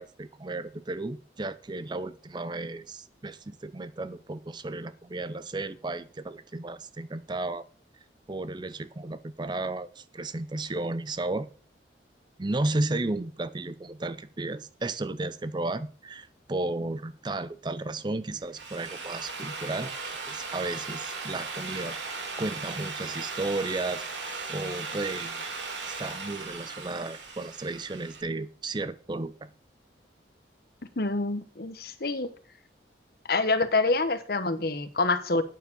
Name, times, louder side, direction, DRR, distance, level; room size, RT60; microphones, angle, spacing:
voice 1, 0.0-7.6 8.3-11.5 12.4-22.0 22.4-24.0 24.5-25.4 25.9-29.5, right 2 dB, 25° right, 0.5 m, -33 dB
Drill, 18.4-28.2, right 4 dB, 85° right, 2.7 m, -37 dB
voice 2, 31.0-32.3 33.3-35.4, left 3 dB, 55° left, 1.0 m, -26 dB
9.2 x 7.1 x 6.8 m
head